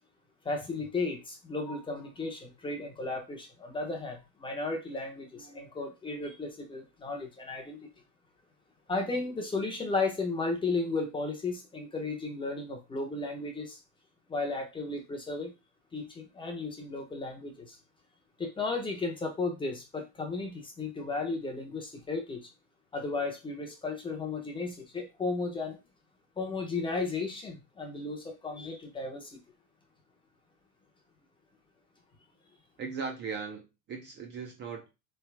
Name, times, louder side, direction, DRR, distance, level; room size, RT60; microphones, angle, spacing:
voice 1, 0.4-7.9 8.9-13.8 14.3-15.5 15.9-17.8 18.4-22.4 22.9-25.8 26.4-29.4, left 3 dB, 10° left, 2 dB, 0.7 m, -34 dB
voice 2, 32.8-34.9, right 5 dB, 25° right, 3 dB, 0.6 m, -38 dB
3.4 x 3.1 x 4.5 m, 0.25 s
supercardioid pair, 155°, 43 cm